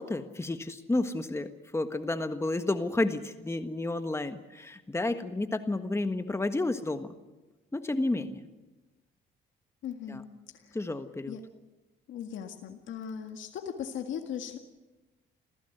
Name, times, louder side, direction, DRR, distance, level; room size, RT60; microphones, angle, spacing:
voice 1, 0.0-7.2 7.7-8.5 10.1-10.2 10.7-11.3, left 2 dB, 15° left, 8 dB, 1.5 m, -31 dB
voice 2, 9.8-10.3 10.6-10.8 11.3-11.4 12.1-14.6, left 8 dB, 75° left, 4 dB, 1.9 m, -38 dB
26.5 x 15.5 x 8.0 m, 1.1 s
cardioid pair, 90°, 20 cm